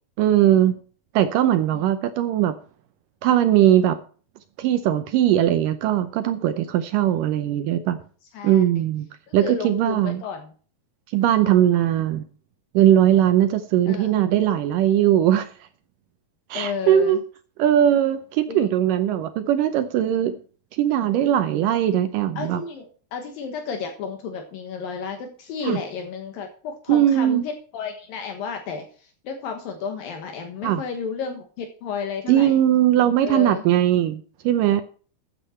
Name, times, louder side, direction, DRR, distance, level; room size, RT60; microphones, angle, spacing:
voice 1, 0.2-0.7 1.1-2.5 3.2-4.0 4.6-8.0 8.4-9.1 9.3-10.2 11.1-12.2 12.7-15.5 16.5-17.2 17.6-20.4 20.7-22.6 25.6-25.8 26.9-27.4 30.6-30.8 32.3-34.8, right 11 dB, 75° right, 10 dB, 2.1 m, -19 dB
voice 2, 8.3-8.6 9.3-10.5 13.9-14.1 16.5-17.2 18.5-18.7 22.4-32.6 33.2-33.6, left 6 dB, 70° left, 5 dB, 3.0 m, -32 dB
13.5 x 8.8 x 4.4 m, 0.41 s
omnidirectional pair, 4.3 m